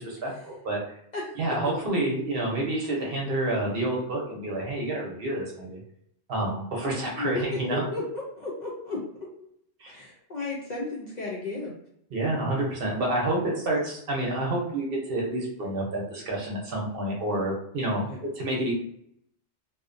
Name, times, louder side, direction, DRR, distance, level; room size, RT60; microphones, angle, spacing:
voice 1, 0.2-0.8 1.4-5.8 6.3-7.8 9.8-10.0 12.1-18.1 18.4-18.7, right 1 dB, 60° right, -2 dB, 0.9 m, -28 dB
voice 2, 1.1-1.7 7.2-9.0 9.9-11.7 17.9-18.2, left 2 dB, 55° left, -4 dB, 0.5 m, -34 dB
2.6 x 2.1 x 2.5 m, 0.71 s
omnidirectional pair, 1.2 m